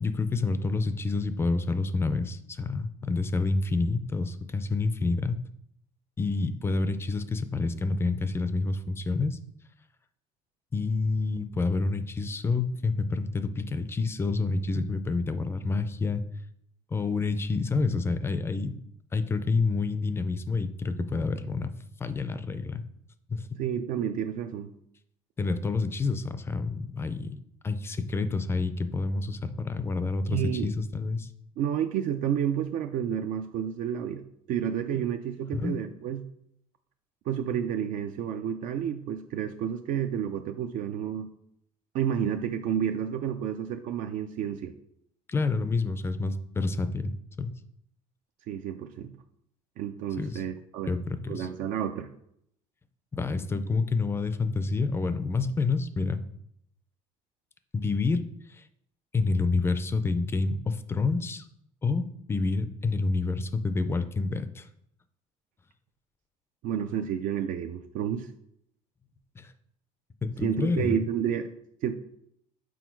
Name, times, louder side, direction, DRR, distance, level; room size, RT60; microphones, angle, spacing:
voice 1, 0.0-5.4 6.2-9.4 10.7-16.2 16.9-18.8 19.1-21.7 22.0-22.8 23.3-23.6 25.4-31.3 35.5-35.8 45.3-47.1 47.4-47.5 50.2-50.4 50.9-51.5 53.1-56.2 57.7-58.2 58.5-58.6 59.1-61.5 61.8-62.0 62.3-64.7 69.4-69.5 70.2-71.0, left 3 dB, 15° left, 11 dB, 0.4 m, -28 dB
voice 2, 23.6-24.7 30.3-30.7 31.6-36.2 37.3-41.3 41.9-44.7 48.5-49.1 49.8-51.0 51.3-52.1 66.6-68.3 70.4-71.5 71.8-71.9, right 9 dB, 65° right, 6 dB, 0.5 m, -30 dB
6.2 x 4.5 x 4.6 m, 0.73 s
cardioid pair, 150°, 14 cm